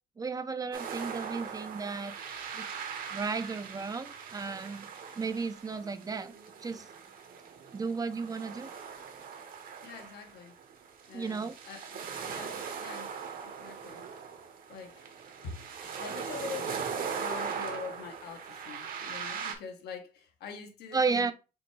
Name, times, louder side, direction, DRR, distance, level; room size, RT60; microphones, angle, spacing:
voice 1, 0.2-2.1 2.5-2.7 3.1-4.9 5.2-6.3 6.6-6.8 7.7-8.7 11.1-11.5 20.9-21.3, right 4 dB, 20° right, 0.5 m, -33 dB
sound 1, 0.7-19.6, right 6 dB, 55° right, 1.1 m, -40 dB
voice 2, 9.8-10.6 11.1-13.1 13.4-14.1 14.7-15.0 15.4-15.6 16.0-21.3, left 5 dB, 75° left, 1.2 m, -44 dB
5.1 x 2.2 x 4.6 m
cardioid pair, 110°, 17 cm